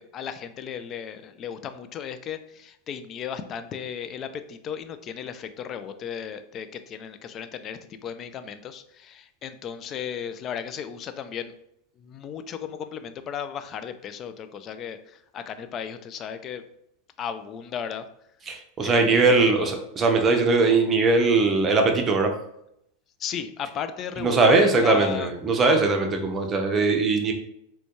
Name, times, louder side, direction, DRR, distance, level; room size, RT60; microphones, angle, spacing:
voice 1, 0.0-11.5 12.0-16.6 17.2-18.1 18.8-19.7 23.2-25.3, left 8 dB, 40° left, 10 dB, 0.4 m, -35 dB
voice 2, 18.5-22.3 24.2-27.3, right 3 dB, 30° right, 4 dB, 0.7 m, -20 dB
4.2 x 2.2 x 3.0 m, 0.76 s
hypercardioid pair, 100°, 0 cm